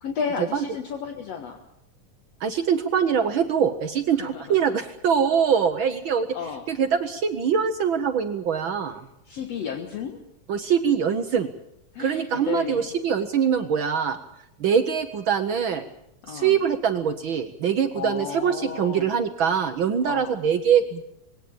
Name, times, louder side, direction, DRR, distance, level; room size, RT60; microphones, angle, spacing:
voice 1, 0.0-1.6 4.2-4.6 6.3-6.6 9.3-10.2 11.9-12.9 16.2-16.6 18.0-19.1 20.0-20.3, left 6 dB, 60° left, 4 dB, 2.4 m, -32 dB
voice 2, 2.4-6.3 6.7-9.0 10.5-11.5 12.0-14.2 14.6-15.8 16.3-21.0, right 7 dB, 65° right, 8 dB, 1.2 m, -23 dB
20.5 x 17.5 x 8.7 m, 0.78 s
omnidirectional pair, 3.4 m